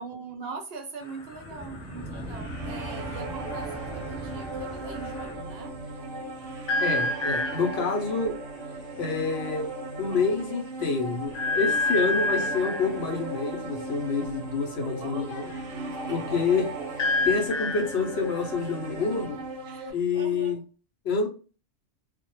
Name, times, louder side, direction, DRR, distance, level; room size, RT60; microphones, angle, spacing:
voice 1, 0.0-5.7 14.8-15.6 16.1-16.4 19.7-20.6, right 4 dB, 65° right, 3 dB, 0.7 m, -42 dB
sound 1, 1.0-5.4 6.7-7.9 9.1-9.2 9.5-9.7 10.1-10.2 11.3-13.0 15.1-19.2, left 2 dB, 85° left, 0.3 m, -31 dB
sound 2, 1.2-6.1, right 1 dB, 5° left, 0.8 m, -41 dB
sound 3, 2.2-19.9, right 2 dB, 90° right, 1.0 m, -37 dB
voice 2, 6.8-8.3 9.0-9.7 10.0-15.5 16.1-17.0 17.3-19.4 19.9-20.6 21.0-21.3, left 4 dB, 65° left, 3 dB, 0.7 m, -27 dB
2.1 x 2.0 x 2.9 m, 0.35 s
omnidirectional pair, 1.3 m